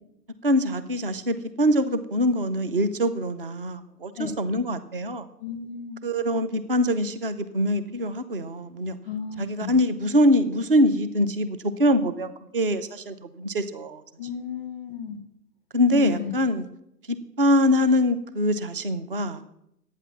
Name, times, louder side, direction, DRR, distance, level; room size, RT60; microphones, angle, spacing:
voice 1, 0.4-5.2 6.0-9.0 9.4-14.0 15.7-16.7 17.1-19.4, equal, 35° right, 12 dB, 0.6 m, -24 dB
voice 2, 5.4-6.0 9.0-9.8 14.2-15.2 15.9-16.4, left 7 dB, 10° left, 10 dB, 0.8 m, -34 dB
11.5 x 9.1 x 7.2 m, 0.78 s
hypercardioid pair, 175°, 50 cm